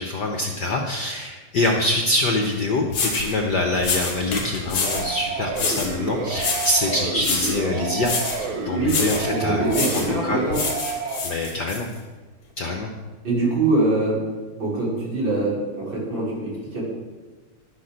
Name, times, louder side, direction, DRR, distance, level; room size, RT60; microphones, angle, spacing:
voice 1, 0.0-8.1 8.4-10.4 11.2-11.9 12.6-12.9, left 2 dB, 85° left, 3 dB, 0.9 m, -25 dB
sound 1, 2.5-2.6 2.9-3.3 3.8-5.1 5.5-6.0 6.4-6.8 7.2-7.6 8.0-8.4 8.9-9.3 9.7-10.1 10.5-11.8, left 4 dB, 55° left, 3.1 m, -27 dB
sound 2, 4.9-11.2, right 3 dB, 75° right, 2.7 m, -29 dB
voice 2, 9.3-10.6 13.2-14.2 14.6-16.8, right 2 dB, 40° right, -6 dB, 5.4 m, -23 dB
11.5 x 10.0 x 6.6 m, 1.3 s
omnidirectional pair, 3.4 m